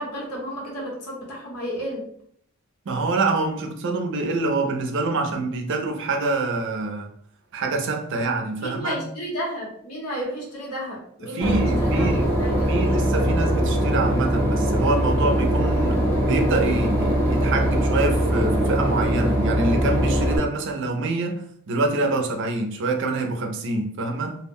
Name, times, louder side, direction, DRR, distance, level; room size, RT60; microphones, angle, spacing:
voice 1, 0.0-2.0 8.6-12.7, equal, 90° left, 1.0 m, -32 dB
voice 2, 2.9-7.1 7.5-9.0 11.2-12.3 12.7-24.4, right 2 dB, 55° right, 0.4 m, -26 dB
Boat Water vehicle / Engine, 11.4-20.4, equal, 10° left, 0.5 m, -21 dB
2.2 x 2.1 x 3.4 m
head